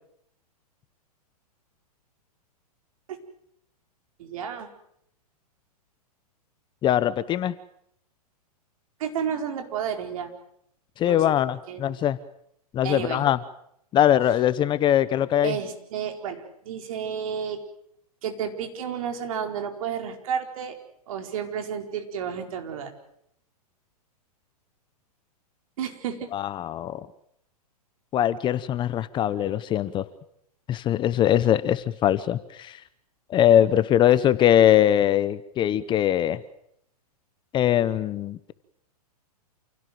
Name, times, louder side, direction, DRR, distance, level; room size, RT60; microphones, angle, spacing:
voice 1, 4.2-4.7 9.0-10.3 11.0-11.2 11.7-12.0 12.8-13.3 15.4-17.6 18.2-20.8 21.1-22.9 25.8-26.3, right 8 dB, 60° right, 5 dB, 4.5 m, -31 dB
voice 2, 6.8-7.5 11.0-12.2 12.7-13.4 13.9-15.6 26.3-27.1 28.1-30.0 30.7-32.8 33.3-36.4 37.5-38.5, left 11 dB, 25° left, 16 dB, 0.9 m, -22 dB
28.5 x 17.0 x 7.8 m, 0.74 s
hypercardioid pair, 125°, 20 cm